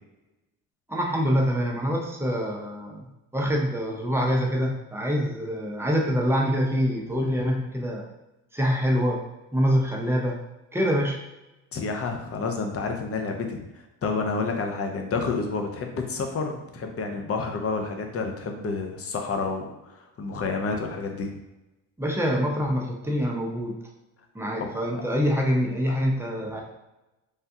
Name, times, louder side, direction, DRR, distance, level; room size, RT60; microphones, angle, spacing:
voice 1, 0.9-3.1 3.3-8.1 8.5-9.2 9.5-10.4 10.7-11.2 22.0-23.8 24.3-26.6, equal, 5° right, -1 dB, 0.6 m, -25 dB
voice 2, 11.7-13.6 14.0-21.3 24.6-25.0 25.9-26.0, left 4 dB, 35° left, 3 dB, 0.7 m, -29 dB
3.5 x 2.2 x 2.8 m, 0.99 s
supercardioid pair, 70°, 40 cm